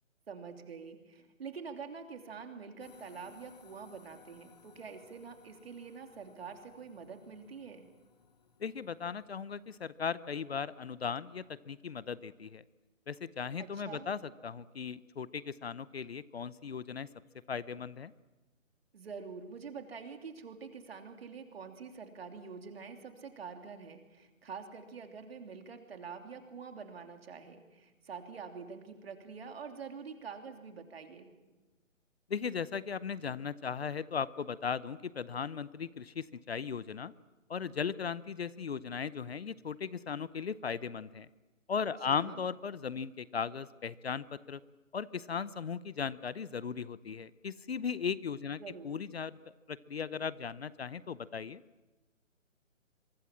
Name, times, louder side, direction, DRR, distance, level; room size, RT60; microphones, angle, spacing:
voice 1, 0.3-7.9 13.6-14.1 18.9-31.3 42.0-42.4 48.6-48.9, right 5 dB, 50° right, 5 dB, 3.1 m, -46 dB
sound 1, 2.8-10.4, left 6 dB, 30° left, 1.2 m, -61 dB
voice 2, 8.6-12.6 13.1-17.1 17.5-18.1 32.3-37.1 37.5-41.3 41.7-44.6 44.9-49.4 49.7-51.6, left 6 dB, 50° left, 18 dB, 0.7 m, -37 dB
25.5 x 23.5 x 7.4 m, 1.1 s
hypercardioid pair, 160°, 40 cm